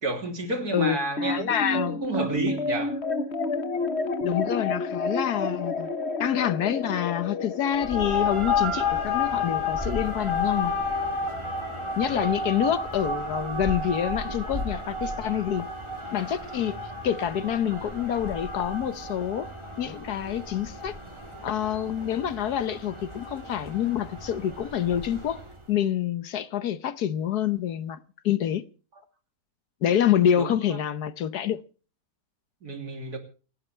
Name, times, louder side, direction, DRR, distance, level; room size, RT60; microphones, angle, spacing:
voice 1, 0.0-3.0 12.0-12.4 30.3-30.8 32.6-33.2, right 2 dB, 65° right, 3.6 m, -31 dB
voice 2, 0.7-2.0 4.2-5.9 6.2-10.7 12.0-15.7 16.1-16.8 17.0-19.5 19.8-20.9 21.4-25.4 25.7-28.0 28.2-28.7 29.8-31.6, left 10 dB, 70° left, 1.4 m, -27 dB
sound 1, 0.8-13.4, left 3 dB, 45° left, 1.3 m, -32 dB
sound 2, 7.7-25.6, left 3 dB, 15° right, 3.4 m, -32 dB
29.0 x 10.0 x 3.3 m
omnidirectional pair, 1.8 m